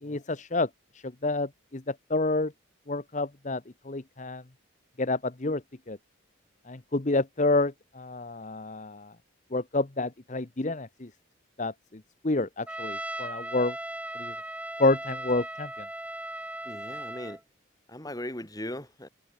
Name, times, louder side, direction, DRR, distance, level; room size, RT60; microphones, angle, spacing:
voice 1, 0.0-0.7 0.9-2.5 2.9-4.4 5.0-5.6 5.9-6.0 6.7-9.1 9.5-11.1 11.6-13.8 14.2-14.3 14.8-15.9, left 2 dB, 35° left, 0.9 m, -29 dB
Trumpet, 12.7-17.4, right 1 dB, 5° right, 1.9 m, -37 dB
voice 2, 16.6-17.4 17.9-19.1, left 1 dB, 15° left, 3.5 m, -38 dB
head